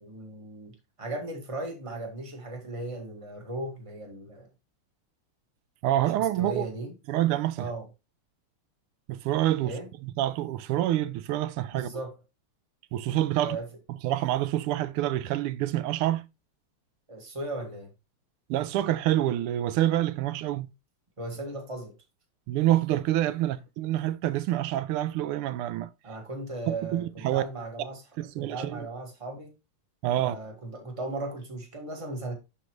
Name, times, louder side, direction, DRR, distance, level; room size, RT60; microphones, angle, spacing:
voice 1, 0.0-4.5 6.2-6.9 7.6-7.9 9.6-9.9 11.7-12.2 13.4-13.7 17.1-17.9 21.2-21.9 26.0-28.0 28.3-29.5 30.2-32.3, right 2 dB, 15° right, 1.5 m, -37 dB
voice 2, 5.8-6.7 7.1-7.7 9.1-9.7 10.0-11.9 12.9-13.6 14.0-16.2 18.5-20.7 22.5-25.9 26.7-27.4 28.2-28.9 30.0-30.3, right 13 dB, 90° right, 1.5 m, -27 dB
11.0 x 4.1 x 3.0 m
omnidirectional pair, 2.4 m